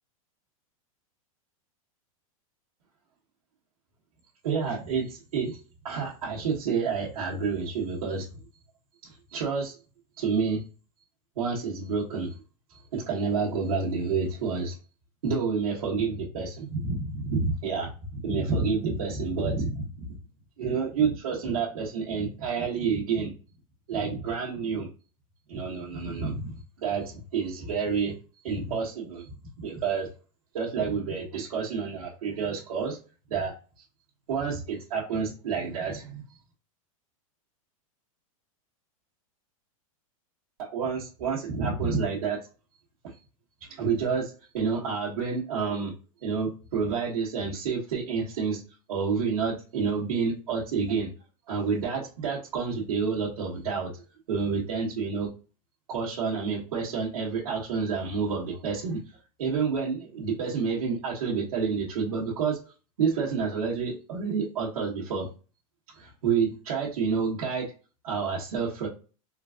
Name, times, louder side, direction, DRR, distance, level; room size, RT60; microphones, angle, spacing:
voice 1, 4.4-5.6 5.8-8.2 9.0-9.8 10.2-10.6 11.4-12.4 12.7-14.7 15.2-19.8 20.6-23.3 23.9-24.9 25.5-28.1 28.4-29.3 29.6-30.1 30.5-33.0 33.3-33.5 34.3-36.2 40.6-42.4 43.7-45.9 46.2-48.6 48.9-51.1 51.5-53.9 54.3-55.3 55.9-59.0 59.4-62.6 63.0-65.3 65.9-67.7 68.0-68.9, right 5 dB, 80° right, -6 dB, 1.2 m, -29 dB
3.8 x 2.4 x 2.4 m, 0.35 s
hypercardioid pair, 135°, 18 cm